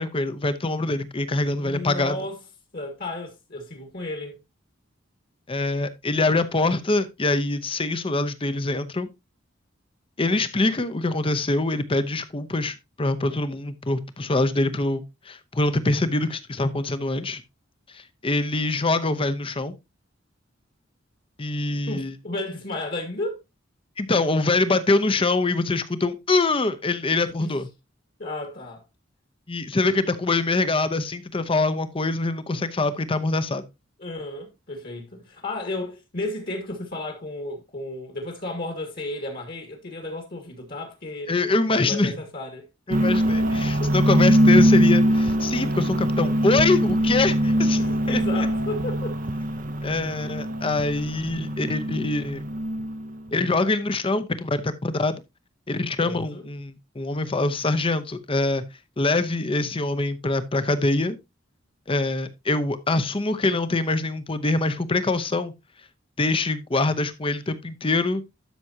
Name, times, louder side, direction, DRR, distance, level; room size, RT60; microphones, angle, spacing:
voice 1, 0.0-2.2 5.5-9.1 10.2-17.4 17.9-19.7 21.4-22.1 24.0-27.7 29.5-33.6 41.3-42.1 42.9-47.8 48.1-48.2 49.8-52.4 53.3-55.2 55.7-58.6 59.0-61.2 61.9-65.5 66.2-68.2, left 2 dB, 30° left, 0.8 m, -24 dB
voice 2, 1.5-2.4 2.7-4.4 21.9-23.4 27.4-27.6 28.2-28.8 29.9-30.0 34.0-41.3 41.7-42.7 43.8-44.0 47.6-49.2 56.0-56.4, left 2 dB, 50° left, 2.1 m, -33 dB
sound 1, 42.9-53.1, equal, 45° right, 0.7 m, -22 dB
12.5 x 6.1 x 2.8 m
head